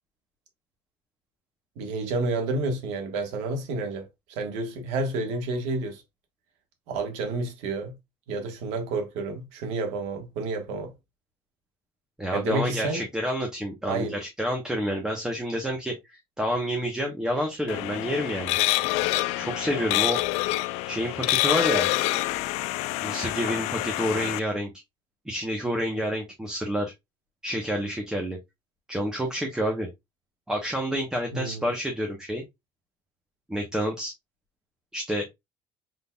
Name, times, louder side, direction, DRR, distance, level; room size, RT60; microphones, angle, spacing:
voice 1, 1.8-6.0 6.9-8.0 8.3-10.9 12.3-13.0 13.9-14.1 31.3-31.6, right 3 dB, 85° right, 1.5 m, -30 dB
voice 2, 12.2-18.6 19.4-20.2 20.9-21.9 23.0-24.7 25.3-26.9 27.4-28.4 28.9-29.9 30.5-32.4 33.5-34.1 34.9-35.3, equal, 5° right, 1.0 m, -29 dB
sound 1, 17.7-24.4, left 18 dB, 80° left, 0.4 m, -27 dB
5.3 x 3.8 x 2.3 m
cardioid pair, 155°, 11 cm